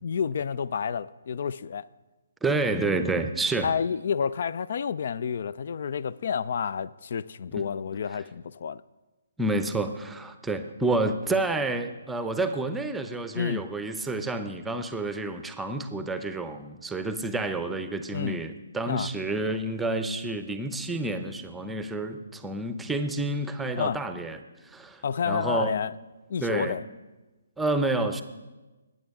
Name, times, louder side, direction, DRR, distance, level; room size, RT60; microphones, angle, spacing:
voice 1, 0.0-1.9 3.6-8.8 13.3-13.7 18.1-18.4 18.9-19.1 23.8-24.0 25.0-25.9 26.3-26.8, left 7 dB, 55° left, 0.3 m, -29 dB
voice 2, 2.4-3.7 7.6-7.7 9.4-25.7 26.4-26.8 27.6-28.2, right 2 dB, 5° right, 0.7 m, -29 dB
20.5 x 9.1 x 3.6 m
figure-of-eight pair, 140°, 0 cm